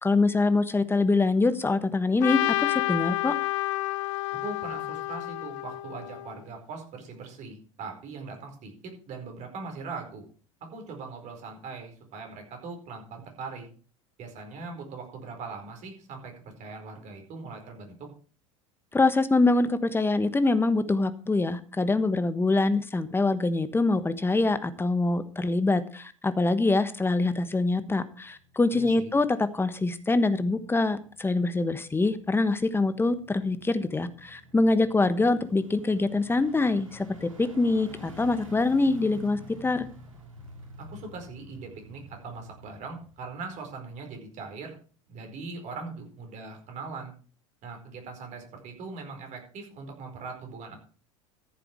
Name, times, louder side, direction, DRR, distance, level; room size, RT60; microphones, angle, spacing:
voice 1, 0.0-3.3 18.9-39.9, left 3 dB, 15° left, 12 dB, 1.3 m, -24 dB
Trumpet, 2.2-6.4, left 18 dB, 65° left, 0.6 m, -29 dB
voice 2, 4.4-10.2 10.7-13.7 14.2-16.3 16.6-18.1 28.7-29.1 40.8-44.7 45.1-47.1 47.6-50.8, right 4 dB, 45° right, 4 dB, 4.7 m, -40 dB
sound 1, 28.2-44.1 44.5-44.6, left 1 dB, 85° right, 2.7 m, -50 dB
14.5 x 7.7 x 4.6 m, 0.40 s
hypercardioid pair, 75°, 17 cm